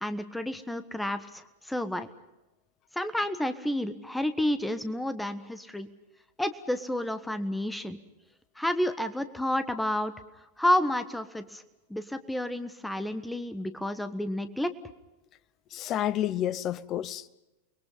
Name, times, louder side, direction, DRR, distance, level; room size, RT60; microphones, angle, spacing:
voice 1, 0.0-2.1 2.9-5.9 6.4-8.0 8.6-10.1 10.6-11.6 11.9-14.7, left 1 dB, 5° left, 1.3 m, -30 dB
voice 2, 15.7-17.3, left 11 dB, 35° left, 0.8 m, -30 dB
29.5 x 21.5 x 5.6 m
figure-of-eight pair, 90°, 0 cm